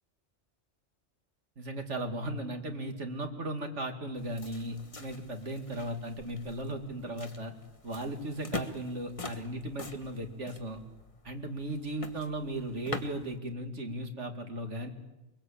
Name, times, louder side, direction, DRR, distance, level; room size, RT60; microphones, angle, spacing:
voice 1, 1.6-7.5 7.8-10.8 11.2-14.9, right 1 dB, 75° right, 5 dB, 2.7 m, -36 dB
sound 1, 4.2-13.4, left 3 dB, 30° left, 1.4 m, -44 dB
23.5 x 22.0 x 8.7 m, 1.0 s
omnidirectional pair, 1.2 m